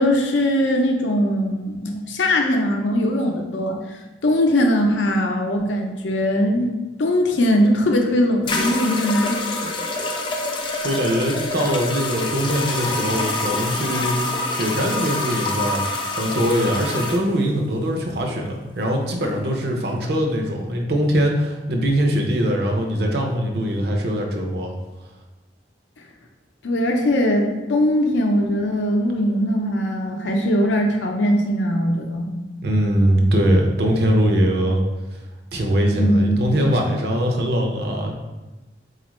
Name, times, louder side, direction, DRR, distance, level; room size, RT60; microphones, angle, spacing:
voice 1, 0.0-6.7 7.0-9.6 26.6-32.3 36.0-36.4, left 1 dB, 85° left, 2 dB, 0.5 m, -20 dB
sound 1, 7.7-7.8 8.5-17.2, left 2 dB, 25° left, 0.3 m, -26 dB
voice 2, 10.8-14.2 14.5-15.8 16.1-24.7 32.6-34.8 35.5-38.1, equal, 60° right, 1 dB, 0.6 m, -21 dB
4.1 x 2.4 x 3.0 m, 1.1 s
head